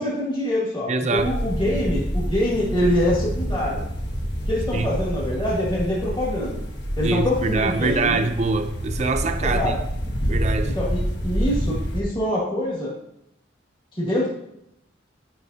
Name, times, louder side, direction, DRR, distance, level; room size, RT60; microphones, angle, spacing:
voice 1, 0.0-3.9 4.5-6.6 7.0-8.2 9.4-9.8 10.7-12.9 14.0-14.3, left 1 dB, 25° left, -6 dB, 1.9 m, -24 dB
voice 2, 0.9-1.3 4.7-4.9 7.0-9.8 10.3-10.8, right 3 dB, 35° right, 7 dB, 0.5 m, -24 dB
sound 1, 1.2-12.0, equal, 65° left, 1.2 m, -27 dB
11.0 x 5.7 x 2.7 m, 0.80 s
head